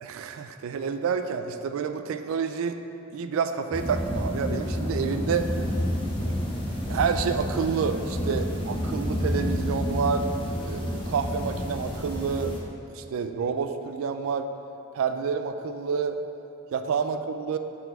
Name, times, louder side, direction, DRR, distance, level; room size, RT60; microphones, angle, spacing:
voice 1, 0.0-2.8 3.1-5.5 6.9-10.3 10.6-12.6 12.9-14.5 14.9-16.2 16.7-17.6, right 6 dB, 70° right, 8 dB, 0.3 m, -28 dB
sound 1, 3.7-12.6, equal, 20° left, 0.6 m, -29 dB
4.5 x 4.3 x 5.3 m, 2.9 s
head